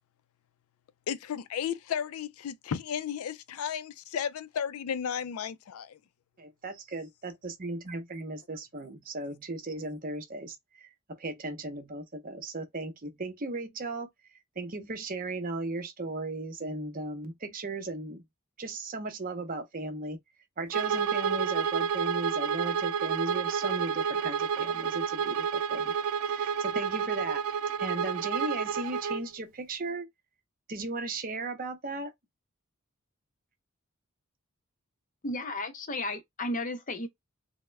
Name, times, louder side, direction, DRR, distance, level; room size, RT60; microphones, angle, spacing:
voice 1, 1.1-6.0, left 8 dB, 80° left, 0.4 m, -34 dB
voice 2, 6.4-10.9 11.2-14.1 14.6-18.2 18.6-20.2 20.6-25.9 26.3-27.4 27.8-30.1 30.7-32.1, right 2 dB, 40° right, 0.7 m, -36 dB
Bowed string instrument, 20.7-29.2, right 6 dB, 75° right, 0.3 m, -30 dB
voice 3, 35.2-37.1, left 2 dB, 35° left, 0.6 m, -33 dB
3.5 x 2.1 x 3.1 m
head